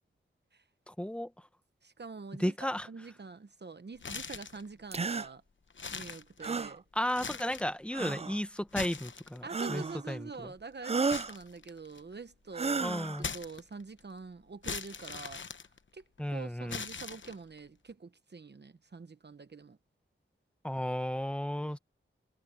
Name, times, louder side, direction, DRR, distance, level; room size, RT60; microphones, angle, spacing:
voice 1, 0.9-1.5 2.4-2.9 6.9-10.5 12.8-13.3 16.2-16.8 20.6-21.8, equal, 5° left, 1.1 m, -34 dB
voice 2, 1.8-2.5 2.9-5.4 5.9-6.8 9.4-13.1 13.3-15.4 15.9-19.8, right 4 dB, 55° right, 1.0 m, -45 dB
sound 1, 4.0-4.7 5.2-5.3 5.7-6.7 7.1-7.8 8.6-9.6 11.1-12.1 13.2-14.0 14.6-16.2 16.7-17.6, left 5 dB, 65° left, 1.0 m, -41 dB
sound 2, 4.9-5.3 6.4-6.8 7.9-8.4 9.5-10.0 10.8-11.4 12.5-13.2, right 4 dB, 30° right, 0.4 m, -32 dB
wide cardioid pair, 65°, 21 cm